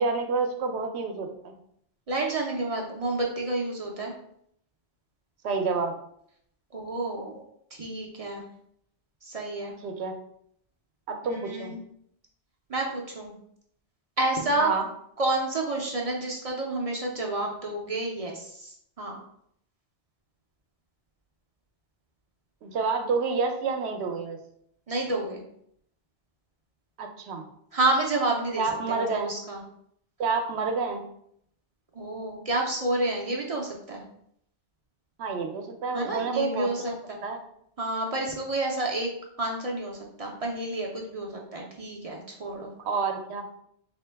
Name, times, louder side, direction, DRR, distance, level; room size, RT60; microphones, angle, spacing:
voice 1, 0.0-1.6 5.4-5.9 9.8-10.1 11.1-11.7 14.6-14.9 22.6-24.4 27.0-27.4 28.6-29.3 30.2-31.0 35.2-36.9 37.2-37.4 42.8-43.4, right 4 dB, 70° right, 5 dB, 0.9 m, -28 dB
voice 2, 2.1-4.1 6.7-7.4 7.7-8.4 9.2-9.7 11.3-11.8 12.7-13.3 14.2-14.7 15.2-19.2 24.9-25.4 27.7-29.6 31.9-34.0 35.9-37.2 37.8-39.1 39.4-42.7, right 2 dB, 45° right, -1 dB, 0.5 m, -29 dB
3.7 x 2.8 x 3.3 m, 0.70 s
omnidirectional pair, 1.2 m